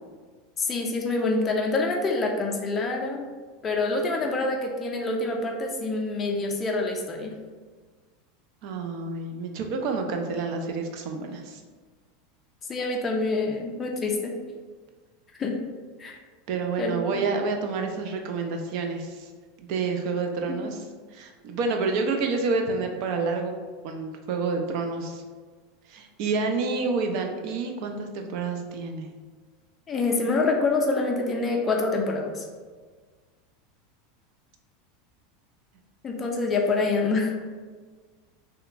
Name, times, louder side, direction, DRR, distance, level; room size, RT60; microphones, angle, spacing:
voice 1, 0.6-3.2 3.6-7.3 12.7-14.3 15.4-15.6 16.0-16.2 16.8-16.9 20.5-20.6 29.9-32.5 36.0-37.3, left 3 dB, 30° left, 1 dB, 0.4 m, -26 dB
voice 2, 8.6-11.6 16.5-19.3 19.6-20.8 21.1-23.6 23.8-25.2 25.9-29.1, right 4 dB, 60° right, 4 dB, 0.4 m, -28 dB
2.8 x 2.1 x 2.5 m, 1.5 s
hypercardioid pair, 90°, 0 cm